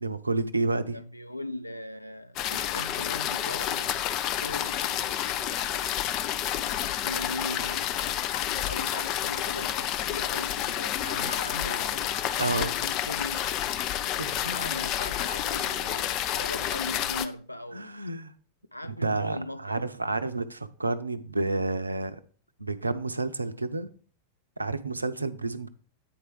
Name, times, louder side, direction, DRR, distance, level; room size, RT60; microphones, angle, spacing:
voice 1, 0.0-1.0 12.4-12.7 14.2-14.8 17.7-18.3 18.8-22.2 22.6-23.9 24.6-25.7, right 2 dB, 80° right, 0.5 m, -30 dB
voice 2, 0.9-4.0 4.4-5.3 7.0-8.1 8.5-12.1 12.4-13.5 14.4-18.0 18.7-19.9, left 1 dB, 90° left, 0.3 m, -39 dB
sound 1, 2.4-17.3, left 11 dB, 40° left, 0.5 m, -29 dB
8.6 x 4.7 x 4.7 m
figure-of-eight pair, 90°, 0 cm